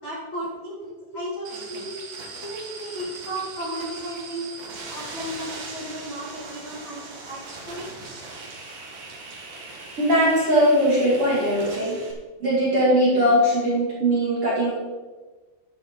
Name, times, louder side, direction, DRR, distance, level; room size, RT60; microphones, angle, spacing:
voice 1, 0.0-1.9 2.4-4.5 4.9-7.8, right 1 dB, 45° left, -6 dB, 1.6 m, -34 dB
sound 1, 1.4-12.1, right 3 dB, 60° right, 1.7 m, -39 dB
voice 2, 10.0-12.0 12.4-14.7, equal, 35° right, -7 dB, 2.6 m, -20 dB
10.5 x 10.0 x 3.9 m, 1.3 s
omnidirectional pair, 5.6 m